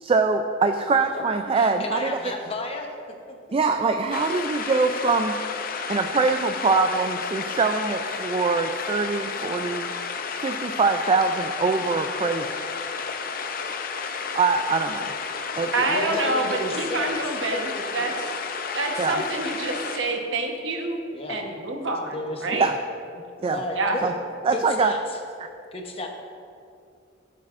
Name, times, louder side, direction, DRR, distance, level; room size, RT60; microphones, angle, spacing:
voice 1, 0.0-2.1 3.5-5.4 5.9-9.9 10.4-12.6 14.3-15.1 15.6-15.7 19.0-19.2 22.5-22.7 23.4-23.6 24.0-24.1 24.5-24.9, right 4 dB, 30° right, 6 dB, 0.3 m, -23 dB
voice 2, 1.5-2.9 15.5-15.6 15.9-18.3 21.1-21.4 22.1-22.6 23.5-24.1 24.5-25.2 25.7-26.1, left 1 dB, 30° left, 2 dB, 0.9 m, -33 dB
sound 1, 4.1-20.0, left 5 dB, 50° left, 0.6 m, -32 dB
voice 3, 15.7-18.1 18.7-21.0 21.3-22.1 22.4-22.7 23.7-24.0, right 2 dB, 80° right, 2 dB, 1.1 m, -27 dB
15.0 x 7.5 x 2.5 m, 2.5 s
head